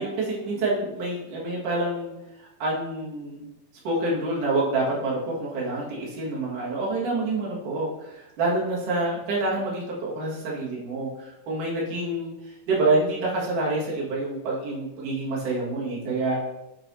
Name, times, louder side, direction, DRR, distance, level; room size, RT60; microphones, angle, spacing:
voice 1, 0.0-3.4 3.8-16.3, right 2 dB, 60° right, -6 dB, 3.3 m, -27 dB
8.9 x 3.2 x 4.5 m, 0.91 s
omnidirectional pair, 4.4 m